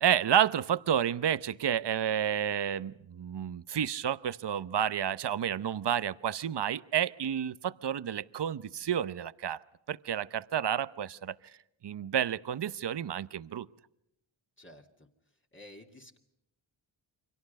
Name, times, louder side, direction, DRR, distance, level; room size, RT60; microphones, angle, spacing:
voice 1, 0.0-9.6 9.9-11.4 11.8-13.7, right 9 dB, 55° right, 16 dB, 0.8 m, -30 dB
voice 2, 14.6-15.1 15.5-16.2, left 1 dB, 25° left, 1 dB, 2.4 m, -52 dB
29.5 x 24.5 x 5.4 m, 0.80 s
wide cardioid pair, 80°, 49 cm